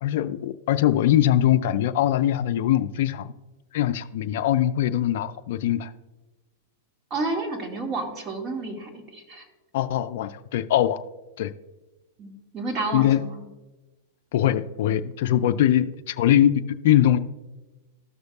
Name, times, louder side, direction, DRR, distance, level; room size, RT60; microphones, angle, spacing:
voice 1, 0.0-3.3 3.7-5.9 9.7-11.0 11.4-11.5 12.9-13.2 14.3-16.5 16.8-17.2, left 12 dB, 60° left, 12 dB, 0.4 m, -22 dB
voice 2, 7.1-9.4 12.2-13.4, right 3 dB, 30° right, 1 dB, 2.0 m, -31 dB
14.0 x 6.4 x 2.4 m, 1.1 s
hypercardioid pair, 105°, 0 cm